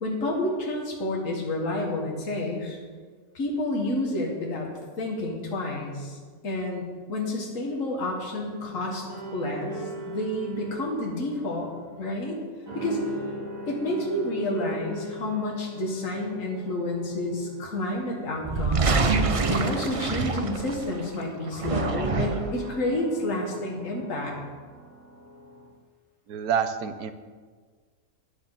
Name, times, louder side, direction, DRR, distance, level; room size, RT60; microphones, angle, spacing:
voice 1, 0.0-2.8 3.3-4.7 5.0-6.2 6.4-6.8 7.1-9.0 9.3-11.7 12.0-12.4 12.7-13.0 13.7-19.2 19.5-24.4, left 1 dB, 60° left, -1 dB, 2.1 m, -29 dB
sound 1, 8.6-25.7, right 1 dB, 65° right, 4.4 m, -40 dB
sound 2, 18.4-21.0 21.5-22.6, right 4 dB, 45° right, 0.4 m, -26 dB
voice 2, 26.3-27.1, right 7 dB, 85° right, 10 dB, 1.3 m, -27 dB
13.5 x 9.8 x 4.0 m, 1.5 s
omnidirectional pair, 1.5 m